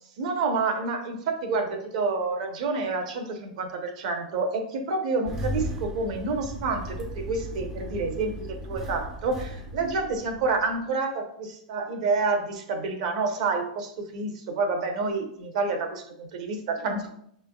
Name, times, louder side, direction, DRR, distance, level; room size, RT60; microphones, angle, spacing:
voice 1, 0.2-17.1, right 3 dB, 55° right, 5 dB, 0.8 m, -28 dB
Engine starting, 5.3-10.8, equal, 10° right, 0.4 m, -36 dB
5.8 x 3.3 x 2.3 m, 0.69 s
supercardioid pair, 160°, 5 cm